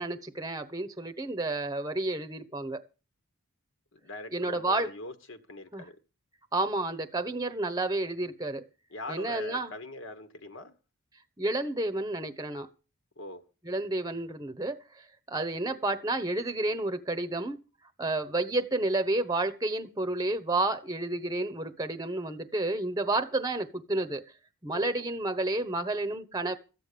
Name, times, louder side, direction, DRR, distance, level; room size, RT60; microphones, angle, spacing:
voice 1, 0.0-2.8 4.3-4.9 5.7-5.8 6.5-8.6 9.1-9.7 11.4-12.7 13.6-17.6 18.0-24.2 24.6-26.6, right 2 dB, 15° right, 1.1 m, -30 dB
voice 2, 3.9-6.0 8.9-10.7 13.2-13.4 24.7-25.1, left 2 dB, 55° left, 1.4 m, -42 dB
14.0 x 9.1 x 6.9 m
head